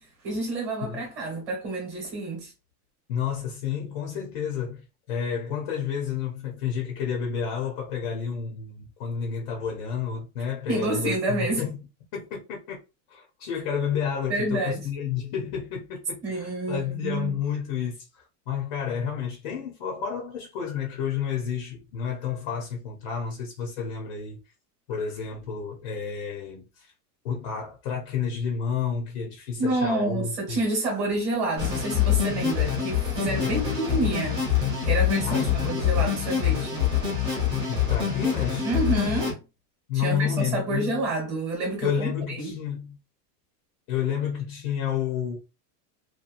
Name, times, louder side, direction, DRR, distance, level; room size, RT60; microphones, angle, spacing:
voice 1, 0.2-2.5 10.7-11.6 14.3-14.8 16.2-17.3 29.6-34.4 34.8-36.9 38.6-39.4 40.0-42.5, right 2 dB, 30° right, 1.1 m, -28 dB
voice 2, 3.1-11.8 12.1-12.8 13.1-24.4 24.9-26.9 27.2-30.7 33.4-33.6 35.3-35.7 37.7-38.7 39.9-41.0 41.8-43.0 43.9-45.4, left 7 dB, 35° left, 0.5 m, -30 dB
sound 1, 31.6-39.3, left 9 dB, 10° right, 0.6 m, -25 dB
2.8 x 2.2 x 2.5 m
supercardioid pair, 180°, 46 cm